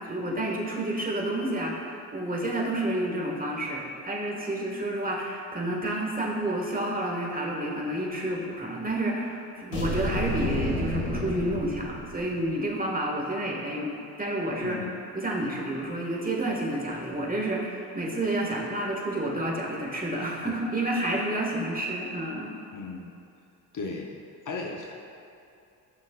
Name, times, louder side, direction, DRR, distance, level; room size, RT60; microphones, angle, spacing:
voice 1, 0.1-13.9 14.2-14.8 15.1-22.5, right 1 dB, 20° right, -2 dB, 1.9 m, -30 dB
sound 1, 9.7-12.5, left 1 dB, 80° left, 2.0 m, -30 dB
voice 2, 14.6-15.0 20.4-20.5 22.7-23.1 23.7-24.2 24.4-24.9, left 3 dB, 45° left, 1 dB, 1.0 m, -36 dB
13.5 x 6.3 x 2.5 m, 2.6 s
hypercardioid pair, 50°, 45 cm